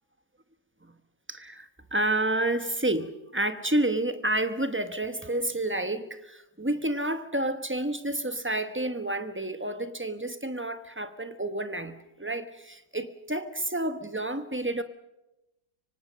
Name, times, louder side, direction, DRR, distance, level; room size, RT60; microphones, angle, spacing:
voice 1, 1.3-14.8, right 1 dB, 10° right, 0.6 m, -30 dB
25.0 x 25.0 x 6.4 m
omnidirectional pair, 2.1 m